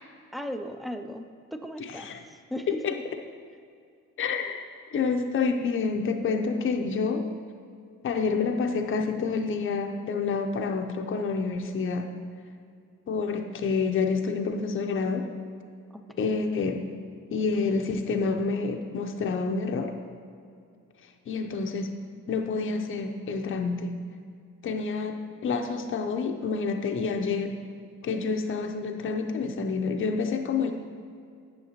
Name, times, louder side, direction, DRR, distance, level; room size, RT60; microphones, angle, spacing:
voice 1, 0.3-3.0 15.9-16.7, equal, ahead, 7 dB, 0.4 m, -38 dB
voice 2, 1.8-2.2 2.7-2.9 4.2-7.3 8.0-12.1 13.1-15.3 16.2-16.8 17.3-19.9 21.3-21.9 22.3-23.9 24.6-27.6 28.0-30.7, left 4 dB, 45° left, 4 dB, 0.6 m, -28 dB
9.4 x 6.6 x 2.9 m, 2.3 s
cardioid pair, 90°, 30 cm